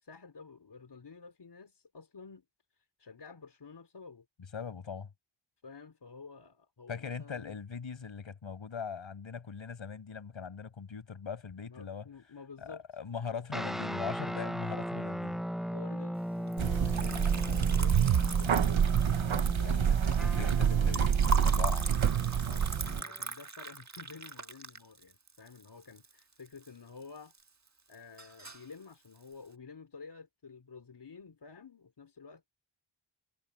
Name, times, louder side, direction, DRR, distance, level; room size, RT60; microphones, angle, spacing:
voice 1, 0.0-2.4 2.8-4.3 5.6-7.6 11.6-12.8 13.2-13.4 15.7-19.2 19.6-21.1 22.4-27.3 27.9-32.5, left 5 dB, 60° left, 3.8 m, -51 dB
voice 2, 4.5-5.1 6.9-12.1 12.6-15.4 19.6-20.1 20.4-21.9, left 6 dB, 80° left, 6.6 m, -40 dB
sound 1, 13.5-23.2, equal, ahead, 0.9 m, -38 dB
Liquid, 16.5-26.7 27.0-27.7 27.9-28.7, right 2 dB, 35° right, 1.6 m, -40 dB
sound 2, 16.6-23.0, right 8 dB, 85° right, 1.3 m, -27 dB
cardioid pair, 55°, 46 cm